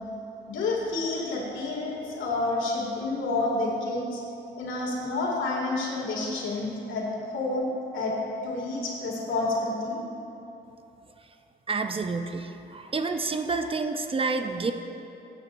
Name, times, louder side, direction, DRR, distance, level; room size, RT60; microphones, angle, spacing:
voice 1, 0.5-4.2 4.6-8.2 8.4-10.0, left 2 dB, 80° left, -3 dB, 2.5 m, -29 dB
voice 2, 11.7-14.7, right 4 dB, 30° right, 6 dB, 0.6 m, -29 dB
15.5 x 9.2 x 2.6 m, 2.9 s
cardioid pair, 90°, 20 cm